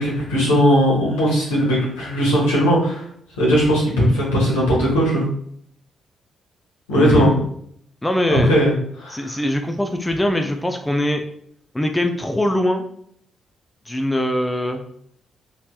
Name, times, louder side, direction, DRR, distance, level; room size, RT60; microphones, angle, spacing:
voice 1, 0.0-3.0 3.4-5.2 6.9-7.3 8.3-8.7 9.0-9.3, equal, 85° left, -5 dB, 1.1 m, -18 dB
voice 2, 6.9-7.4 8.0-8.6 9.1-11.2 11.7-12.8 13.9-14.8, left 1 dB, 15° left, 5 dB, 0.4 m, -22 dB
3.2 x 2.8 x 2.2 m, 0.66 s
hypercardioid pair, 40°, 0 cm